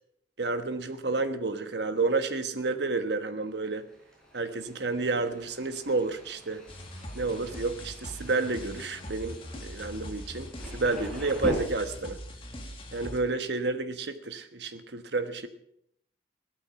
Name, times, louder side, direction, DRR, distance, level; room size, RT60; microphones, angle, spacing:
voice 1, 0.4-3.9 4.3-6.6 7.1-12.2 12.9-15.5, right 3 dB, 75° right, 1.3 m, -30 dB
Thunder, 3.4-11.5, equal, 5° left, 4.5 m, -43 dB
sound 1, 6.7-13.2, equal, 30° left, 2.0 m, -42 dB
16.5 x 12.5 x 5.8 m
head